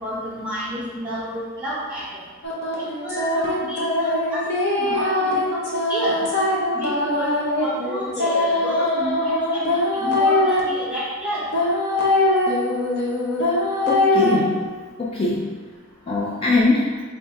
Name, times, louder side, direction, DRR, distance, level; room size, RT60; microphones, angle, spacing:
voice 1, 0.0-2.1 2.7-4.4 4.7-5.6 5.9-6.2 6.7-11.5, equal, 5° right, -8 dB, 1.5 m, -30 dB
sound 1, 2.4-10.6 11.5-14.3, left 2 dB, 55° left, 0.8 m, -22 dB
voice 2, 13.9-14.6 15.0-15.5 16.1-16.9, left 3 dB, 30° left, -4 dB, 0.4 m, -21 dB
3.4 x 2.6 x 4.5 m, 1.4 s
head